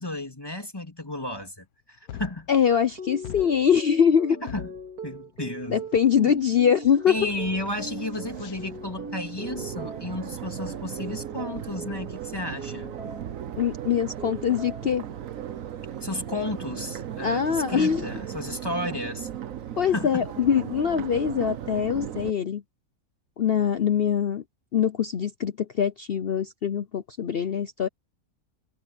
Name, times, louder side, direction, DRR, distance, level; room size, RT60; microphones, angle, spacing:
voice 1, 0.0-2.5 4.3-4.7 5.0-5.8 7.1-13.0 16.0-19.3 19.9-20.3, left 1 dB, 15° left, 3.3 m, -33 dB
sound 1, 1.6-1.7 2.1-3.0 3.2-4.0 4.5-6.0 6.4-6.9 7.2-8.6, left 10 dB, 75° left, 1.3 m, -42 dB
voice 2, 2.5-4.4 5.7-7.2 13.6-15.0 17.2-18.1 19.8-22.6 23.4-24.4 24.7-27.9, left 8 dB, 50° left, 0.7 m, -23 dB
sound 2, 3.0-13.4 13.8-15.0 15.4-15.9, right 3 dB, 80° right, 3.4 m, -41 dB
Crowd, 7.2-22.3, right 10 dB, 60° right, 1.2 m, -37 dB
omnidirectional pair, 1.6 m